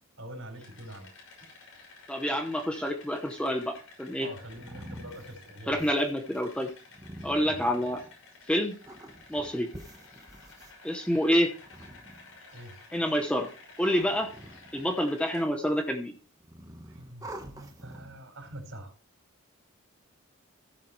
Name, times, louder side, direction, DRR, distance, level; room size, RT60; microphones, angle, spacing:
voice 1, 0.2-1.1 4.2-5.9 7.5-7.6 12.5-12.8 16.9-18.9, right 1 dB, 70° right, 4 dB, 4.7 m, -44 dB
sound 1, 0.5-15.4, left 3 dB, 85° left, 6.3 m, -53 dB
voice 2, 2.1-4.3 5.7-6.7 7.2-8.0 8.5-8.7 9.3-9.7 10.8-11.5 12.9-13.5 13.8-14.3 14.7-16.1, equal, 5° left, 3 dB, 0.9 m, -27 dB
sound 2, 4.0-8.3 8.8-10.7 11.5-12.7 13.5-15.0 15.3-16.0 16.4-18.3, right 1 dB, 15° right, 1.3 m, -47 dB
15.0 x 7.6 x 3.2 m, 0.37 s
head